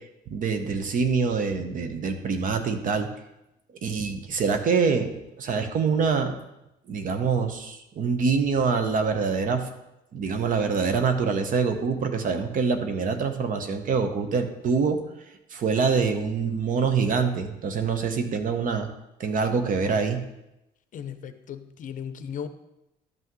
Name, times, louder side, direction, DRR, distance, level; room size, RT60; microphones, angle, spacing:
voice 1, 0.3-3.1 3.8-5.1 5.4-6.4 6.9-9.7 10.1-15.0 15.5-18.9 19.2-20.2, right 5 dB, 55° right, 7 dB, 1.0 m, -25 dB
voice 2, 20.9-22.5, left 8 dB, 50° left, 10 dB, 0.6 m, -36 dB
12.0 x 5.7 x 3.1 m, 0.89 s
cardioid pair, 110°, 17 cm